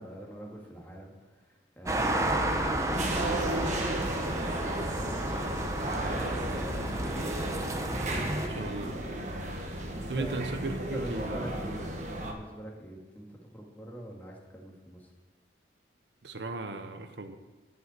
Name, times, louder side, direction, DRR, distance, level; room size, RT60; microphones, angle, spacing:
voice 1, 0.0-3.4 4.2-7.4 9.9-10.5 10.9-15.1, right 1 dB, 10° left, -1 dB, 1.8 m, -44 dB
sound 1, 1.9-8.5, right 1 dB, 15° right, 0.7 m, -31 dB
sound 2, 2.9-12.3, right 1 dB, 40° right, 1.3 m, -35 dB
voice 2, 8.5-9.0 10.1-11.4 16.2-17.4, right 2 dB, 75° right, 8 dB, 0.8 m, -36 dB
12.0 x 5.6 x 8.1 m, 1.2 s
head